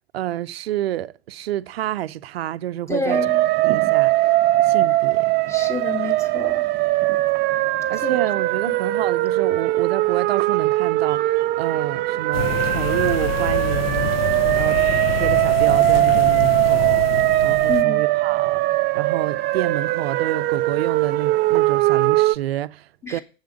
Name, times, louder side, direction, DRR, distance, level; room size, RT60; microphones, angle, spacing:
voice 1, 0.1-3.2 3.6-4.2 4.6-5.4 7.9-14.2 14.6-18.6 18.9-23.2, right 13 dB, 80° right, 0.5 m, -29 dB
voice 2, 2.9-3.4 5.5-6.7 8.0-8.2 8.7-8.8 17.7-18.0 23.0-23.2, left 4 dB, 10° left, 1.7 m, -28 dB
Emergency Siren, 3.1-22.4, right 17 dB, 35° right, 0.5 m, -20 dB
sound 1, 12.3-17.8, left 9 dB, 70° left, 0.7 m, -27 dB
8.0 x 6.7 x 4.9 m
hypercardioid pair, 95°, 31 cm